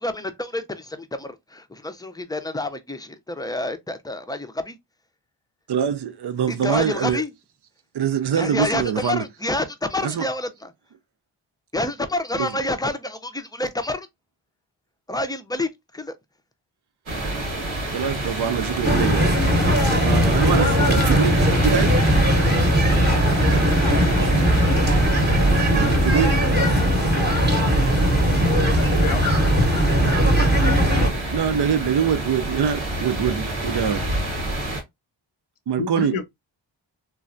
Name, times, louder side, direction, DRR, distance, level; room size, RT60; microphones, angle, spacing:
voice 1, 0.0-4.8 6.5-7.3 8.3-10.7 11.7-14.1 15.1-16.1, left 2 dB, 10° left, 0.5 m, -28 dB
voice 2, 5.7-7.2 7.9-9.2 10.0-10.3 12.4-12.5 17.9-19.7 20.0-21.9 25.7-26.4 31.3-34.1 35.7-36.2, right 8 dB, 60° right, 0.5 m, -24 dB
sound 1, 17.1-34.8, right 1 dB, 85° right, 1.2 m, -29 dB
sound 2, 18.8-31.1, equal, 20° right, 1.0 m, -19 dB
voice 3, 28.6-29.6 35.8-36.2, left 5 dB, 90° left, 0.6 m, -30 dB
3.1 x 2.2 x 2.5 m
cardioid pair, 40°, 47 cm